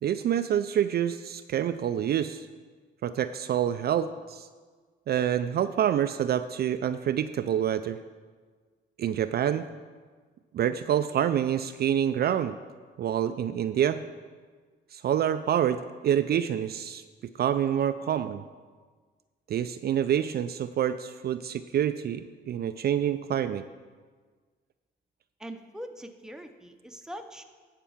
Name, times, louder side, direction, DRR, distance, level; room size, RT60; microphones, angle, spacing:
voice 1, 0.0-2.5 3.0-4.5 5.1-8.0 9.0-9.7 10.5-12.6 13.0-14.0 14.9-17.0 17.4-18.4 19.5-23.6, right 10 dB, 55° right, 10 dB, 0.4 m, -27 dB
voice 2, 25.4-27.4, equal, 5° right, 6 dB, 0.7 m, -42 dB
10.0 x 4.6 x 7.1 m, 1.5 s
cardioid pair, 90°, 20 cm